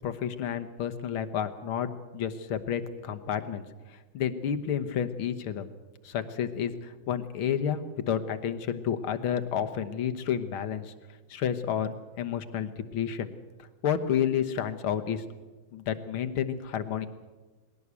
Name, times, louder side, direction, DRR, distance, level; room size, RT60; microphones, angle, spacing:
voice 1, 0.0-3.6 3.9-5.6 6.0-7.8 8.1-10.9 11.3-13.3 13.8-15.2 15.7-17.1, left 8 dB, 90° left, 8 dB, 2.1 m, -30 dB
20.5 x 17.5 x 8.3 m, 1.3 s
omnidirectional pair, 2.2 m